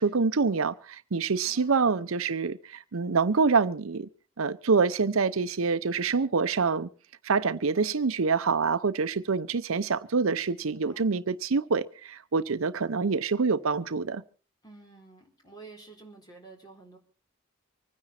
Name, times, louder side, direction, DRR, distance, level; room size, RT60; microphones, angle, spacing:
voice 1, 0.0-4.1 4.4-6.9 7.2-14.2, right 4 dB, 85° right, 0.7 m, -26 dB
voice 2, 1.4-1.8 10.6-11.0 14.6-17.0, right 3 dB, 20° left, 4.0 m, -50 dB
25.0 x 9.9 x 4.3 m
head